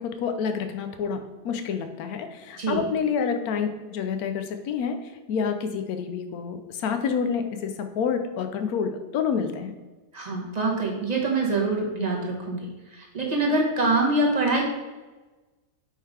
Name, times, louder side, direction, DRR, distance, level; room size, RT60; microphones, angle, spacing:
voice 1, 0.0-5.0 5.3-9.7, left 6 dB, 70° left, 7 dB, 1.1 m, -28 dB
voice 2, 10.1-12.6 13.0-14.6, right 2 dB, 30° right, -1 dB, 1.0 m, -24 dB
5.4 x 3.8 x 4.9 m, 1.2 s
omnidirectional pair, 1.7 m